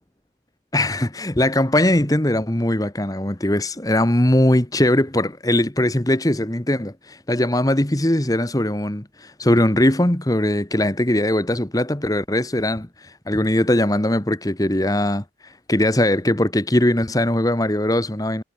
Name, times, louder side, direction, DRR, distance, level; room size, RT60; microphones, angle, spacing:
voice 1, 0.7-18.4, left 1 dB, 20° left, 1.3 m, -20 dB
head